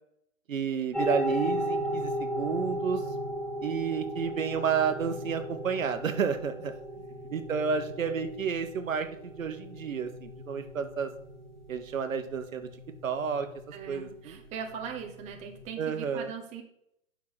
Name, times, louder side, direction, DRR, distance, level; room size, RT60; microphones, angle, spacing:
voice 1, 0.5-3.0 3.6-6.7 7.3-11.1 11.7-12.7 13.0-13.5 13.9-14.3 15.8-16.3, right 6 dB, 70° right, 8 dB, 1.2 m, -31 dB
sound 1, 0.9-15.7, equal, ahead, 1.5 m, -36 dB
voice 2, 13.7-16.6, right 7 dB, 15° right, 3 dB, 1.0 m, -40 dB
7.6 x 5.8 x 6.0 m, 0.75 s
hypercardioid pair, 130°, 41 cm